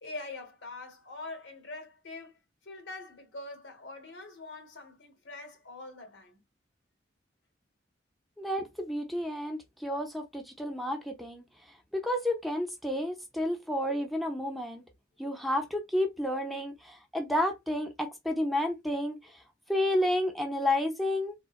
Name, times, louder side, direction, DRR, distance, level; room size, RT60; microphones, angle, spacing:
voice 1, 0.0-6.4, left 2 dB, 80° left, 1.2 m, -44 dB
voice 2, 8.4-11.4 11.9-14.8 15.2-19.2 19.7-21.3, left 1 dB, ahead, 0.5 m, -31 dB
3.6 x 2.1 x 2.4 m
head